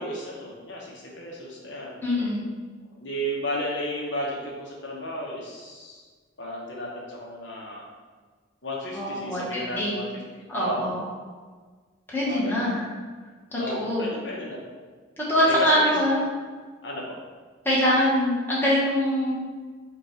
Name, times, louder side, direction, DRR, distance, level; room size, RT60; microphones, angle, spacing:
voice 1, 0.0-2.0 3.0-6.0 6.4-7.9 8.6-10.9 12.2-12.7 13.6-14.6 15.4-15.9 16.8-17.0, equal, 60° left, -3 dB, 0.8 m, -33 dB
voice 2, 2.0-2.4 8.9-10.0 10.5-11.0 12.1-12.9 13.5-14.1 15.2-16.3 17.6-19.3, equal, 10° left, -7 dB, 1.1 m, -23 dB
5.2 x 2.3 x 4.4 m, 1.5 s
head